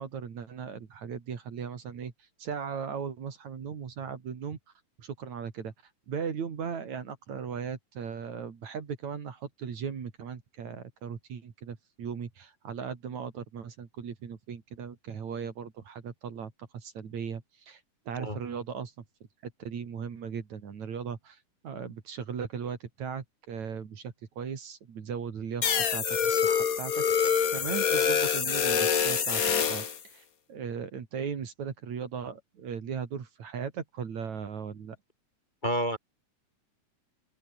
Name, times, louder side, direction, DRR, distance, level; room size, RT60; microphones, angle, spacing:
voice 1, 0.0-2.1 2.4-4.6 5.0-5.7 6.1-19.0 19.4-21.4 21.6-25.7 25.9-35.0, right 6 dB, 65° right, 4.0 m, -38 dB
sound 1, 25.6-30.0, left 7 dB, 50° left, 1.1 m, -26 dB
voice 2, 35.6-36.0, equal, 15° left, 3.7 m, -29 dB
open air
omnidirectional pair, 3.6 m